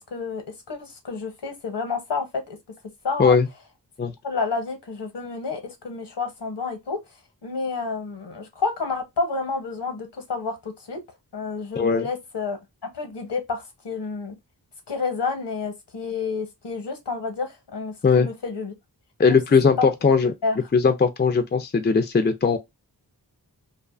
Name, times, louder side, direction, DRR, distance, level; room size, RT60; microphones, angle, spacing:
voice 1, 0.0-2.6 3.0-3.4 4.2-7.0 7.4-11.0 11.3-12.6 12.9-14.3 14.9-18.7 19.3-19.4 19.8-19.9 20.4-20.6, left 4 dB, 75° left, 1.0 m, -29 dB
voice 2, 19.2-20.3 20.7-22.6, left 5 dB, 25° left, 0.4 m, -19 dB
2.5 x 2.3 x 2.4 m
wide cardioid pair, 65°, 42 cm